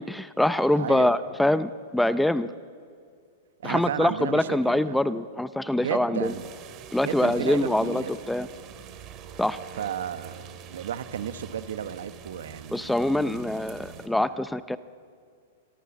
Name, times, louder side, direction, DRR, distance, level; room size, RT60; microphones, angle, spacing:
voice 1, 0.0-2.5 3.6-6.3 6.9-8.5 9.4-9.6 12.7-14.8, left 1 dB, 5° left, 14 dB, 0.7 m, -24 dB
voice 2, 0.7-1.1 3.6-5.0 5.7-6.5 7.0-8.1 9.8-10.4 10.7-12.9, right 9 dB, 80° right, 10 dB, 1.5 m, -33 dB
sound 1, 6.2-14.1, right 8 dB, 35° right, 2.9 m, -45 dB
29.0 x 24.0 x 7.5 m, 2.1 s
hypercardioid pair, 130°, 0 cm